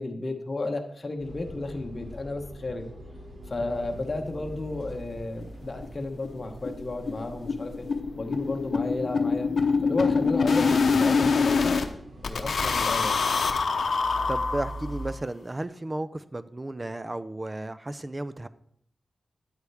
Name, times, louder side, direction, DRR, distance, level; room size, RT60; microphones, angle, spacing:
voice 1, 0.0-2.9 3.5-7.9 8.2-9.5 9.8-11.8 12.2-13.2, left 2 dB, 35° left, 3 dB, 1.1 m, -33 dB
sound 1, 1.2-15.1, right 1 dB, 55° right, 2.7 m, -43 dB
sound 2, 5.0-5.1 5.4-5.5 5.8-5.9 6.2-6.4 6.6-11.9 12.2-15.0, left 4 dB, 75° left, 0.8 m, -25 dB
voice 2, 14.3-18.5, right 1 dB, 25° right, 14 dB, 0.5 m, -34 dB
9.8 x 8.3 x 3.5 m, 0.68 s
wide cardioid pair, 80°, 0 cm